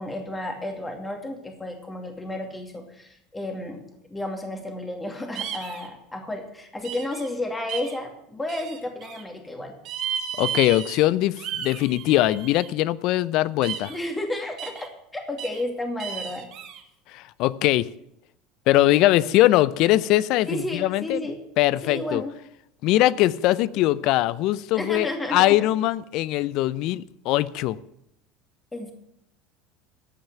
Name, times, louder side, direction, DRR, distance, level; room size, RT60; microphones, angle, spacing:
voice 1, 0.0-3.8 4.1-9.7 13.9-16.5 20.5-21.4 21.8-22.3 24.7-25.4 28.7-28.9, left 1 dB, 15° left, 4 dB, 2.4 m, -32 dB
sound 1, 5.4-5.9 6.8-7.3 7.7-8.0 8.5-9.2 9.9-11.1 11.4-12.7 13.6-14.0 14.6-14.9 15.4-15.6 16.0-16.8, right 9 dB, 55° right, 2.1 m, -33 dB
voice 2, 10.4-13.9 17.1-17.9 18.7-21.2 21.6-22.2 22.8-27.8, left 15 dB, 60° left, 20 dB, 0.5 m, -21 dB
14.5 x 5.7 x 9.1 m, 0.78 s
hypercardioid pair, 95°, 0 cm